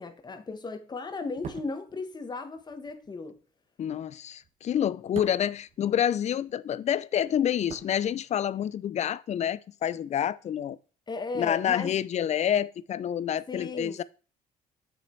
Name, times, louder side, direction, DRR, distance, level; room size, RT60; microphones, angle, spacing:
voice 1, 0.0-3.4 11.1-12.0 13.5-14.0, left 3 dB, 25° left, 1.4 m, -36 dB
sound 1, 1.3-6.6 6.8-8.7 8.9-9.1, right 6 dB, 40° right, 1.3 m, -46 dB
voice 2, 3.8-10.8 11.3-14.0, left 10 dB, 40° left, 0.5 m, -28 dB
7.7 x 6.4 x 4.5 m
cardioid pair, 110°, 17 cm